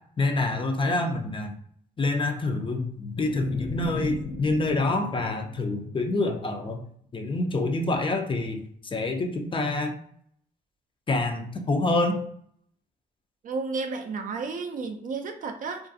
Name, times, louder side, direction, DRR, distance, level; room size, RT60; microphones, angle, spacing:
voice 1, 0.2-1.5 2.0-6.8 7.1-8.6 8.9-9.9 11.1-12.2, left 2 dB, 30° left, 4 dB, 0.5 m, -26 dB
sound 1, 3.2-6.4, left 4 dB, 85° left, 0.6 m, -36 dB
voice 2, 13.4-15.9, right 4 dB, 50° right, 5 dB, 0.4 m, -32 dB
2.4 x 2.3 x 2.6 m, 0.63 s
supercardioid pair, 70°, 18 cm